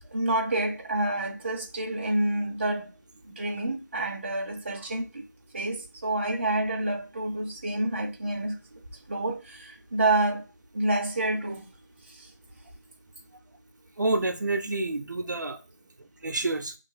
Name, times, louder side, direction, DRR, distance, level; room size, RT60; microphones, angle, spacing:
voice 1, 0.1-2.9 3.3-5.2 5.5-8.6 9.1-10.4 10.7-11.6 12.2-12.3, right 2 dB, 40° right, 0.7 m, -28 dB
voice 2, 14.0-15.6 16.2-16.7, right 2 dB, 75° right, 0.7 m, -28 dB
5.2 x 3.2 x 2.3 m
figure-of-eight pair, 170°, 10 cm